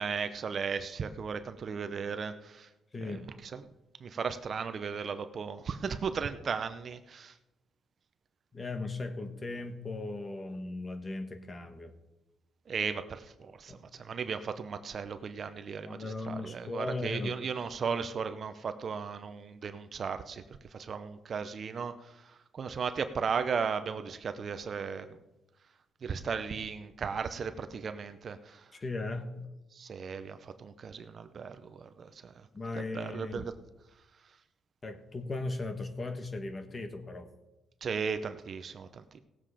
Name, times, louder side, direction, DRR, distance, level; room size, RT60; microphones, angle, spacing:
voice 1, 0.0-2.7 3.0-3.2 3.5-3.6 4.0-7.3 12.7-20.4 20.7-25.2 26.0-28.7 29.7-32.3 32.7-33.5 37.8-39.2, right 6 dB, 50° right, 10 dB, 0.7 m, -36 dB
voice 2, 2.9-3.3 8.5-11.9 13.7-13.8 15.8-17.4 28.7-29.3 32.5-33.5 34.8-37.3, left 2 dB, 30° left, 7 dB, 1.4 m, -37 dB
17.0 x 7.6 x 5.0 m, 1.0 s
cardioid pair, 90°, 0 cm